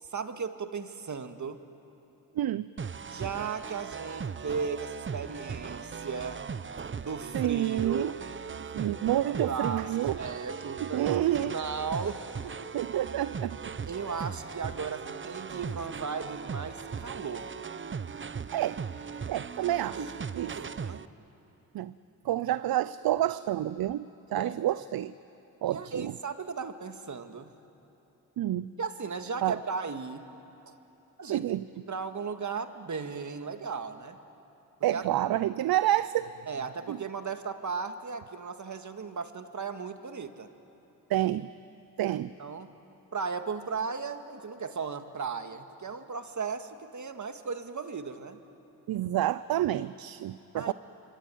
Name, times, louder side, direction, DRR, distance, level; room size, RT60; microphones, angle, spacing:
voice 1, 0.0-1.6 3.1-6.4 6.9-8.2 9.4-9.8 10.2-12.7 13.9-17.5 19.6-19.7 20.0-20.1 20.5-21.0 24.3-24.6 25.6-27.5 28.8-30.3 30.7-30.8 31.2-31.5 31.9-34.2 34.9-35.0 36.5-40.5 42.1-42.7 43.1-48.4 50.5-50.7, right 5 dB, 50° right, 8 dB, 2.0 m, -36 dB
voice 2, 2.3-2.7 7.3-8.1 8.7-10.2 10.8-11.5 12.7-13.8 18.5-18.8 19.3-20.0 20.3-20.6 21.7-21.9 22.2-25.1 25.6-26.1 28.4-28.7 29.4-29.6 31.3-31.6 34.8-36.3 36.9-37.0 41.1-41.5 42.0-42.3 48.9-50.7, right 13 dB, 70° right, 16 dB, 0.7 m, -29 dB
sound 1, 2.8-21.1, right 6 dB, 30° right, 0.8 m, -38 dB
26.0 x 24.5 x 9.4 m, 3.0 s
supercardioid pair, 45°, 38 cm